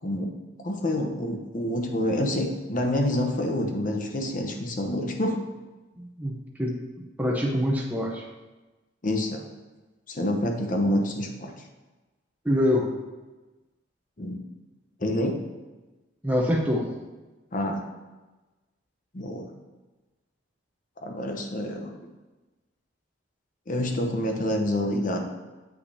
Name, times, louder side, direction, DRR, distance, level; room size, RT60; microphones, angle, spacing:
voice 1, 0.0-0.3 0.6-5.4 9.0-9.4 10.1-11.5 14.2-14.4 15.0-15.3 17.5-17.8 19.1-19.5 21.0-21.9 23.7-25.2, left 1 dB, 40° left, 3 dB, 0.8 m, -27 dB
voice 2, 6.0-6.3 6.6-6.8 7.2-8.2 12.4-12.9 16.2-16.9, left 1 dB, 10° right, -2 dB, 0.7 m, -24 dB
8.2 x 5.8 x 2.8 m, 1.2 s
head